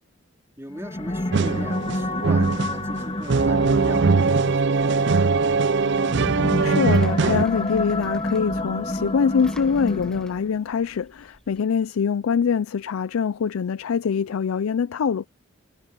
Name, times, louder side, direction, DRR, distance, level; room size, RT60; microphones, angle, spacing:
voice 1, 0.6-5.3, right 1 dB, 15° right, 4.2 m, -39 dB
sound 1, 0.7-10.6, left 1 dB, 30° left, 1.8 m, -29 dB
sound 2, 1.3-7.4, right 4 dB, 60° right, 0.5 m, -21 dB
Engine, 5.8-11.6, equal, 5° left, 1.1 m, -47 dB
voice 2, 6.4-15.3, left 6 dB, 90° left, 0.4 m, -24 dB
head